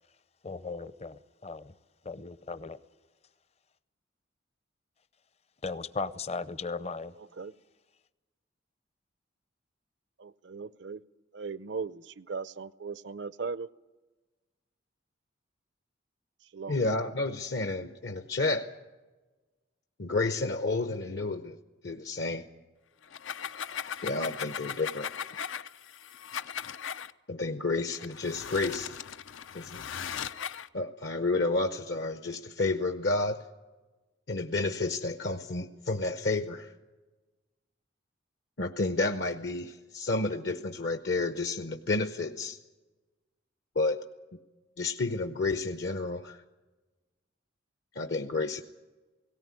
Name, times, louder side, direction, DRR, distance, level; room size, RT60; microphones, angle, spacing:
voice 1, 0.4-1.7 2.0-2.8 5.6-7.1, left 4 dB, 35° left, 15 dB, 0.6 m, -37 dB
voice 2, 10.2-11.0 11.3-13.7 16.5-16.8, right 5 dB, 65° right, 18 dB, 0.6 m, -38 dB
voice 3, 16.7-18.7 20.0-21.6 21.8-22.5 24.0-25.1 27.3-29.0 29.5-29.8 30.7-33.5 34.3-36.7 38.6-42.6 43.8-44.0 44.8-46.4 47.9-48.6, left 3 dB, 60° left, 8 dB, 0.9 m, -30 dB
sound 1, 23.0-27.1 27.9-30.7, left 8 dB, 90° left, 0.6 m, -38 dB
18.5 x 17.5 x 9.6 m, 1.2 s
head